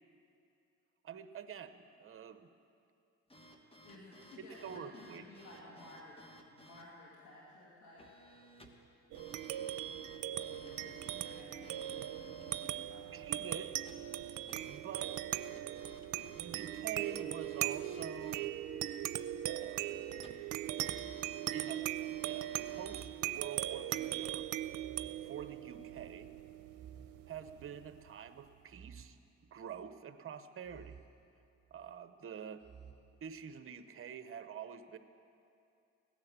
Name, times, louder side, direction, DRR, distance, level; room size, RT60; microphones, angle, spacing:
voice 1, 1.0-2.5 4.4-5.3 10.7-10.8 13.1-13.7 14.5-15.1 16.3-18.5 19.5-20.0 21.5-24.5 25.2-26.3 27.3-29.2 29.5-31.0 31.7-32.6 33.2-35.0, right 8 dB, 45° right, 10 dB, 0.9 m, -47 dB
sound 1, 3.3-6.9 8.0-8.9 9.1-12.8 13.9-18.6 19.6-20.5 20.8-23.1, equal, 20° left, 1.5 m, -57 dB
voice 2, 3.8-6.2 6.5-8.1 10.3-13.4, left 2 dB, 80° left, -6 dB, 2.8 m, -55 dB
sound 2, 9.1-28.0, right 13 dB, 85° right, 0.6 m, -40 dB
sound 3, 20.0-20.1 20.8-22.1 22.8-24.1 24.7-26.0 26.7-28.0 28.7-30.0 30.6-31.9 32.6-32.9, right 7 dB, 15° right, 3.8 m, -57 dB
17.0 x 10.5 x 7.3 m, 2.5 s
cardioid pair, 90°, 30 cm